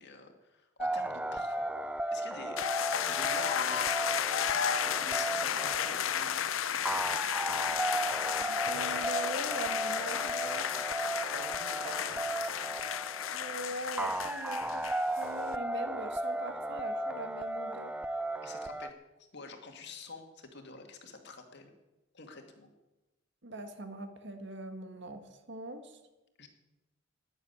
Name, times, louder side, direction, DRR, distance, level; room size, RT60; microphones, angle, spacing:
voice 1, 0.0-1.7 2.1-2.6 3.0-4.0 4.8-7.0 11.3-12.2 18.4-18.9 19.3-21.7 22.1-22.7 26.4-26.5, left 3 dB, 60° left, 4 dB, 2.2 m, -48 dB
sound 1, 0.8-18.9, right 1 dB, 5° right, 0.4 m, -36 dB
sound 2, 2.6-15.2, left 9 dB, 90° left, 0.6 m, -33 dB
voice 2, 8.7-10.7 13.3-14.9 15.2-17.9 23.4-26.0, right 1 dB, 65° right, 7 dB, 1.7 m, -41 dB
11.0 x 9.7 x 9.6 m, 1.1 s
head